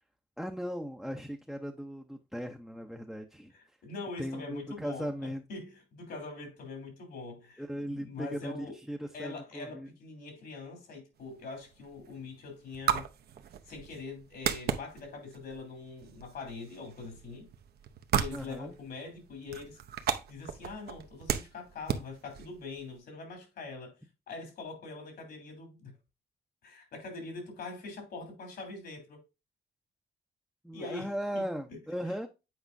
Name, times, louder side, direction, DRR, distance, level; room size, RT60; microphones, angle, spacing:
voice 1, 0.4-3.5 4.2-5.4 7.6-9.9 18.3-18.7 30.6-32.3, equal, ahead, 0.6 m, -38 dB
voice 2, 3.5-7.6 7.9-8.8 9.1-13.1 13.7-17.5 18.1-19.8 20.3-24.0 24.3-25.9 26.6-29.2 30.7-31.4 31.7-31.8, left 3 dB, 70° left, 3.1 m, -43 dB
sound 1, 11.2-23.0, right 9 dB, 70° right, 0.8 m, -37 dB
8.3 x 4.9 x 2.6 m
cardioid pair, 130°, 17 cm